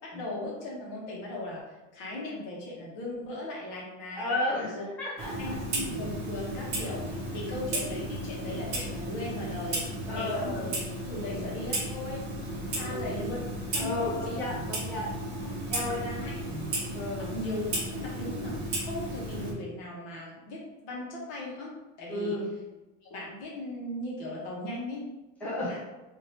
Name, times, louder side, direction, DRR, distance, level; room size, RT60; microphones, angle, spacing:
voice 1, 0.0-4.4 4.7-4.9 5.4-9.8 10.1-10.7 11.0-12.3 12.7-13.4 13.7-14.4 15.4-16.4 17.2-17.6 17.9-22.4 23.0-25.1 25.6-25.8, left 1 dB, 55° left, -4 dB, 1.2 m, -38 dB
voice 2, 4.2-5.6 10.1-10.7 11.2-11.4 12.8-13.1 13.8-15.1 15.7-16.1 16.9-17.3 22.1-22.5 25.4-25.8, left 2 dB, 5° left, -9 dB, 0.8 m, -33 dB
Clock, 5.2-19.5, right 1 dB, 30° right, 1.0 m, -34 dB
2.9 x 2.8 x 3.1 m, 1.1 s
cardioid pair, 150°, 34 cm